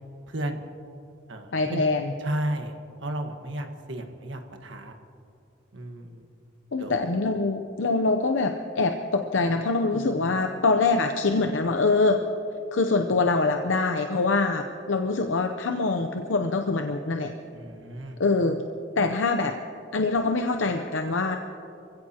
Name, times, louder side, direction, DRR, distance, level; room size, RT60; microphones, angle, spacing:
voice 1, 0.3-0.7 1.3-1.8 2.2-2.7 3.0-4.9 5.7-6.3 6.8-6.9 9.9-10.3 17.5-18.2, right 1 dB, 70° right, 4 dB, 1.4 m, -33 dB
voice 2, 1.5-2.1 6.7-12.2 12.7-17.3 18.2-18.6 19.0-19.5 19.9-21.4, left 3 dB, 75° left, 5 dB, 0.7 m, -24 dB
26.5 x 16.5 x 2.9 m, 2.6 s
head